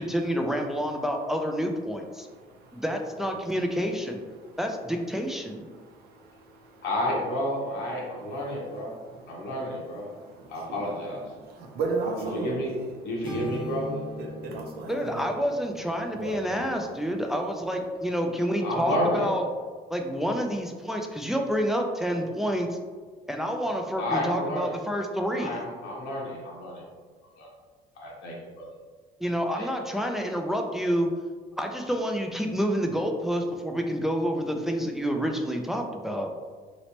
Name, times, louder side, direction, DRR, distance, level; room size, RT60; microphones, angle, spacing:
voice 1, 0.0-2.3 2.7-4.2 4.6-5.7 14.9-19.5 19.9-22.7 23.3-25.6 29.2-31.1 31.6-36.3, equal, ahead, 3 dB, 0.3 m, -28 dB
voice 2, 2.1-2.8 4.3-4.8 5.4-6.9 7.9-13.7 14.2-15.3 16.1-16.8, right 3 dB, 65° right, 1 dB, 0.7 m, -38 dB
voice 3, 6.8-8.9 9.3-10.1 10.5-11.2 12.3-12.7 13.0-14.0 18.6-19.3 24.0-24.8 25.3-26.8 27.4-27.5 28.0-28.7 29.5-29.7, left 1 dB, 90° left, -3 dB, 1.0 m, -30 dB
sound 1, 13.2-17.2, left 2 dB, 30° right, 1.0 m, -41 dB
3.1 x 3.0 x 2.8 m, 1.5 s
cardioid pair, 110°, 17 cm